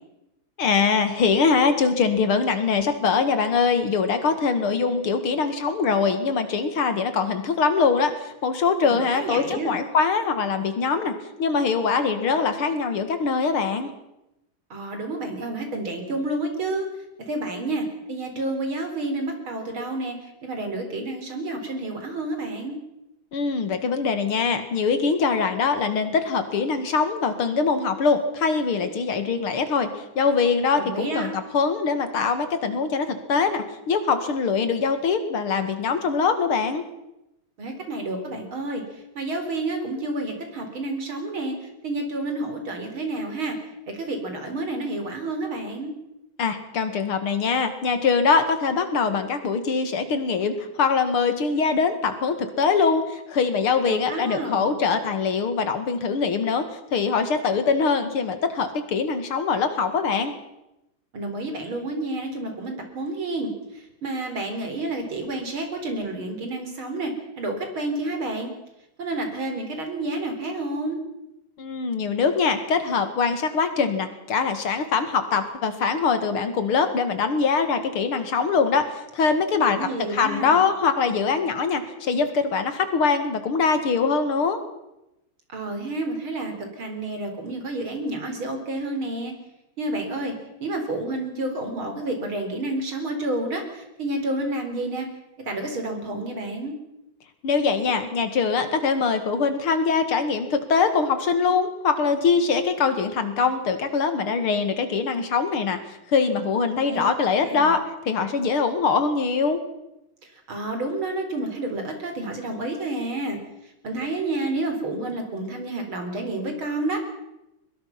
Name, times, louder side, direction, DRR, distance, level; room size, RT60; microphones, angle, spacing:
voice 1, 0.6-11.1 11.4-13.9 23.3-29.9 30.2-36.9 46.4-56.7 56.9-60.3 71.6-84.6 97.4-105.8 106.1-109.6, left 5 dB, 85° left, 9 dB, 2.9 m, -23 dB
voice 2, 8.8-9.7 14.7-16.9 17.3-22.8 30.7-31.3 37.6-43.5 43.9-45.9 53.8-54.7 61.1-68.5 69.0-71.0 79.7-80.6 85.5-89.3 89.8-90.3 90.6-95.1 95.4-96.7 106.9-107.1 107.4-107.7 110.5-113.4 113.8-117.0, right 2 dB, 70° right, 5 dB, 4.9 m, -30 dB
23.0 x 21.5 x 6.0 m, 0.89 s
omnidirectional pair, 2.3 m